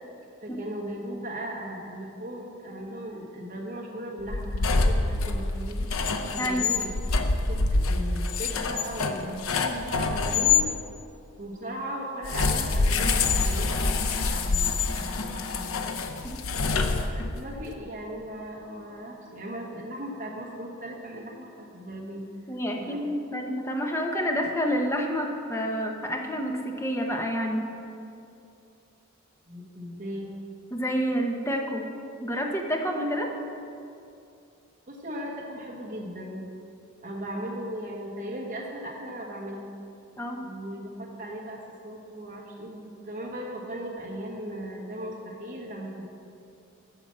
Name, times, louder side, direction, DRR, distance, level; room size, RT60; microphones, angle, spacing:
voice 1, 0.4-5.9 6.3-10.6 11.4-16.2 17.1-22.2 22.7-23.0 29.5-30.3 34.9-36.4 37.0-39.7 40.4-46.0, equal, 40° right, -2 dB, 1.3 m, -37 dB
sound 1, 4.2-10.7 12.2-17.5, left 4 dB, 85° left, 0.7 m, -26 dB
voice 2, 6.4-6.7 16.2-16.3 22.5-27.6 30.7-31.8 32.2-33.3 40.2-40.4, equal, 15° left, 1 dB, 0.8 m, -28 dB
8.9 x 5.9 x 7.3 m, 2.6 s
head